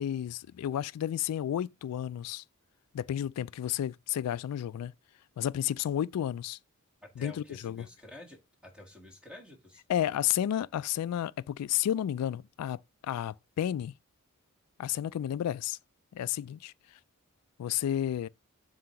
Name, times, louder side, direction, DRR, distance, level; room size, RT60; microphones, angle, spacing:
voice 1, 0.0-2.4 2.9-4.9 5.4-6.6 7.2-7.3 7.6-7.9 9.9-13.9 14.8-15.8 16.1-17.0 17.6-18.3, left 11 dB, 90° left, 0.3 m, -32 dB
voice 2, 7.0-9.8, left 1 dB, 5° right, 1.7 m, -50 dB
7.6 x 2.8 x 5.7 m
head